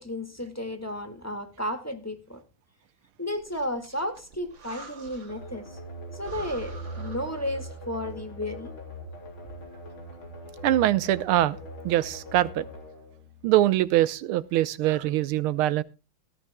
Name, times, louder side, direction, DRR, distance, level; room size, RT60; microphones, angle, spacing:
voice 1, 0.0-2.4 3.2-5.8 6.1-8.7, left 1 dB, 10° left, 6 dB, 1.7 m, -33 dB
Breathing, 3.3-5.5 5.9-6.0 6.2-7.9, right 3 dB, 65° right, 3.2 m, -46 dB
sound 1, 5.3-14.0, right 1 dB, 70° left, 4.4 m, -41 dB
voice 2, 10.6-11.6 11.8-12.7 13.4-15.8, right 14 dB, 85° right, 16 dB, 1.7 m, -23 dB
19.0 x 13.5 x 2.2 m, 0.29 s
omnidirectional pair, 2.3 m